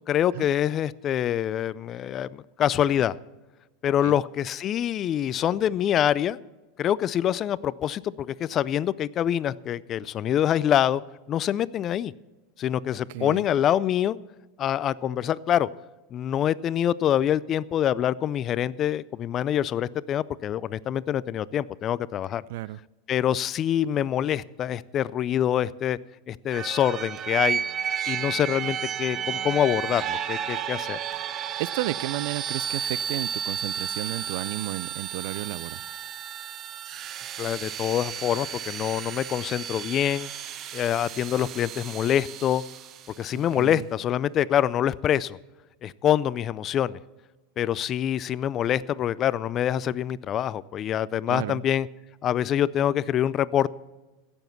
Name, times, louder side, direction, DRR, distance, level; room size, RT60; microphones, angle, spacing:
voice 1, 0.1-3.1 3.8-6.4 6.8-11.0 11.3-12.1 12.6-14.2 14.6-15.7 16.1-22.4 23.1-26.0 26.3-27.6 28.1-31.0 37.4-40.3 40.7-42.6 43.2-45.4 45.8-47.0 47.6-51.9 52.2-53.7, left 10 dB, 35° left, 20 dB, 0.4 m, -25 dB
voice 2, 13.1-13.4 22.5-22.8 31.6-35.8 43.5-43.8 51.3-51.6, right 17 dB, 70° right, 22 dB, 0.3 m, -32 dB
sound 1, 26.5-43.2, right 8 dB, 40° right, 0.7 m, -33 dB
16.0 x 7.2 x 5.7 m, 1.2 s
supercardioid pair, 120°, 0 cm